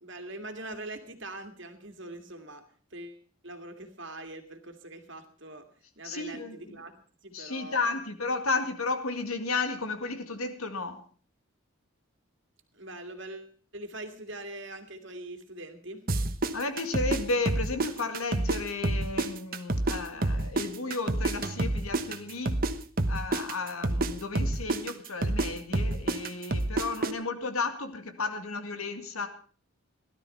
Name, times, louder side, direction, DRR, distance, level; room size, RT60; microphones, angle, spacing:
voice 1, 0.0-2.6 2.9-5.7 6.0-6.9 7.2-7.9 12.7-16.0, right 1 dB, 55° right, 7 dB, 2.3 m, -42 dB
voice 2, 6.0-6.8 7.3-11.0 16.5-22.6 23.1-29.3, left 3 dB, 85° left, 7 dB, 2.2 m, -33 dB
sound 1, 16.1-18.6 18.8-22.7 23.0-27.1, right 2 dB, 40° right, 1.1 m, -28 dB
17.0 x 12.0 x 5.6 m, 0.42 s
head